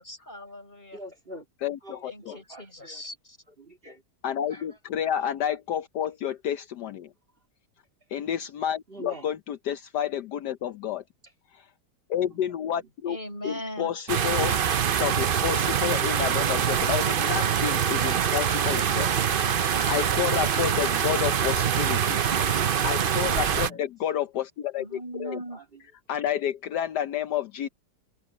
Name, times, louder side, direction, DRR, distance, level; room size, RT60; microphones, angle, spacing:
voice 1, 0.0-1.0 2.0-3.4 13.1-13.9 24.8-25.6, equal, 25° left, 5.6 m, -39 dB
voice 2, 0.9-1.4 1.8-3.0 3.6-4.0 4.5-4.6 8.9-9.3 23.1-23.8 25.5-25.6, right 1 dB, 30° right, 2.6 m, -44 dB
voice 3, 1.6-2.3 4.2-7.1 8.1-11.0 11.5-11.7 12.1-13.2 13.4-19.1 19.9-25.4 26.1-27.7, left 10 dB, 70° left, 1.3 m, -30 dB
sound 1, 14.1-23.7, right 8 dB, 65° right, 0.5 m, -24 dB
omnidirectional pair, 1.9 m